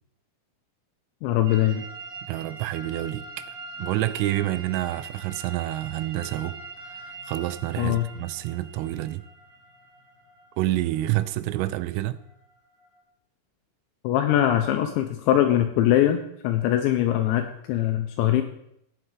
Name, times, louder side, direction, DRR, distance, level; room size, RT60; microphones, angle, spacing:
voice 1, 1.2-1.8 7.8-8.1 14.0-16.2 16.4-18.4, left 12 dB, 85° left, 2.6 m, -22 dB
sound 1, 1.5-13.0, right 3 dB, 65° right, 5.1 m, -43 dB
voice 2, 2.2-6.6 6.9-9.2 10.6-12.2, right 15 dB, 85° right, 3.2 m, -28 dB
17.0 x 6.0 x 4.7 m
omnidirectional pair, 5.8 m